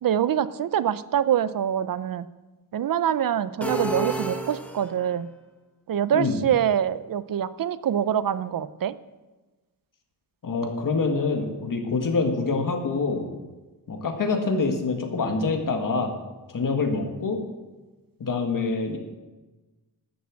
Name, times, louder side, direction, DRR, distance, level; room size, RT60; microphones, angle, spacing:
voice 1, 0.0-2.3 2.7-5.3 5.9-9.0, right 9 dB, 60° right, 15 dB, 0.6 m, -25 dB
sound 1, 3.6-5.2, right 1 dB, 5° left, 1.2 m, -31 dB
voice 2, 10.4-13.2 13.9-16.1 16.5-17.4 18.2-19.0, left 4 dB, 55° left, 4 dB, 1.7 m, -25 dB
12.0 x 7.2 x 7.5 m, 1.2 s
wide cardioid pair, 140°, 38 cm